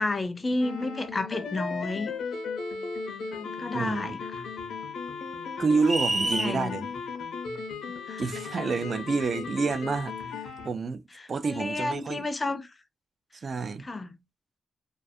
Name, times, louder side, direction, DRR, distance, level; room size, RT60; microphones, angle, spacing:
voice 1, 0.0-2.1 3.3-4.2 6.2-6.9 8.1-8.2 11.1-12.7 13.8-14.2, left 2 dB, 30° left, 0.4 m, -31 dB
sound 1, 0.6-10.7, left 5 dB, 80° left, 0.6 m, -36 dB
voice 2, 3.7-4.2 5.6-6.9 8.2-11.0 11.3-12.3 13.3-13.9, right 4 dB, 50° right, 0.4 m, -28 dB
sound 2, 5.8-6.6, right 2 dB, 30° right, 0.8 m, -27 dB
2.3 x 2.3 x 2.5 m
cardioid pair, 95°, 0 cm